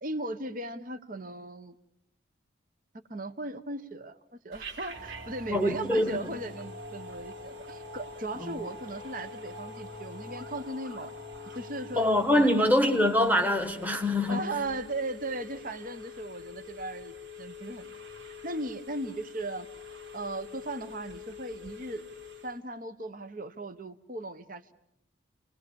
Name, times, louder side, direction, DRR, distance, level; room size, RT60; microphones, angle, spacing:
voice 1, 0.0-1.7 3.1-4.2 4.4-11.1 11.5-12.7 14.3-17.9 18.4-19.7 20.1-22.1 22.4-24.7, right 2 dB, 45° right, 11 dB, 1.0 m, -37 dB
Telephone, 4.5-22.6, left 5 dB, 85° right, 4.2 m, -46 dB
sound 1, 4.9-13.3, right 1 dB, 60° right, 2.7 m, -46 dB
voice 2, 5.5-6.2 8.4-8.5 12.0-14.4, left 1 dB, 10° right, 4 dB, 1.4 m, -24 dB
30.0 x 20.5 x 7.0 m, 0.78 s
head